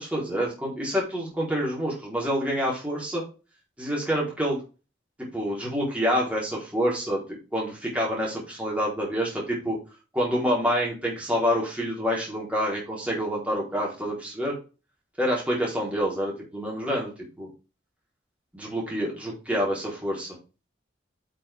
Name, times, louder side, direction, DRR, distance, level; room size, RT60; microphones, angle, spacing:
voice 1, 0.0-3.2 3.8-4.6 5.3-7.2 7.5-9.8 10.1-14.5 15.2-17.1 17.4-17.5 18.5-20.3, equal, 5° right, -4 dB, 4.2 m, -27 dB
8.7 x 6.5 x 3.7 m, 0.32 s
head